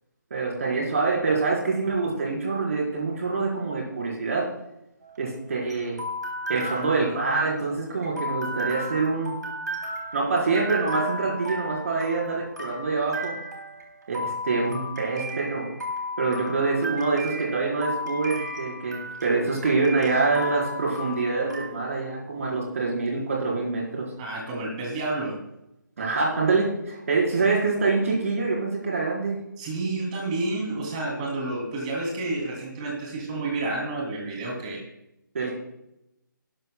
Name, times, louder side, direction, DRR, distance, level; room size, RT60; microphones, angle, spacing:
voice 1, 0.3-4.5 5.2-6.0 6.5-9.3 10.1-13.3 14.1-15.7 16.2-24.1 26.0-29.4 35.3-35.5, right 3 dB, 45° right, -3 dB, 4.5 m, -25 dB
sound 1, 5.0-21.7, equal, 60° right, 3.1 m, -35 dB
voice 2, 24.2-25.4 29.6-34.8, right 2 dB, 20° right, -1 dB, 3.0 m, -30 dB
18.0 x 12.0 x 2.3 m, 0.85 s
figure-of-eight pair, 150°, 11 cm